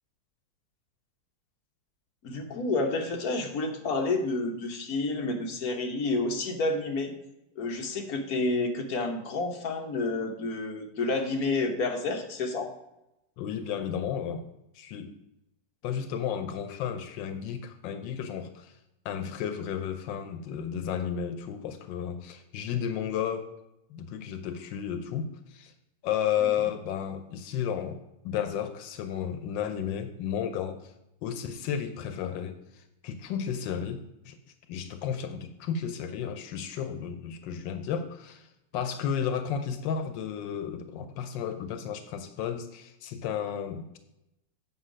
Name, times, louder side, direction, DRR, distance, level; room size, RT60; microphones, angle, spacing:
voice 1, 2.2-7.1 7.6-12.7, left 3 dB, 55° left, 2 dB, 1.5 m, -29 dB
voice 2, 13.4-14.5 14.7-15.1 15.8-18.7 19.0-23.5 23.9-25.7 26.0-28.0 28.2-30.9 31.2-34.4 34.7-38.5 38.7-44.0, left 8 dB, 90° left, 8 dB, 1.4 m, -33 dB
8.2 x 5.5 x 4.9 m, 0.89 s
omnidirectional pair, 2.0 m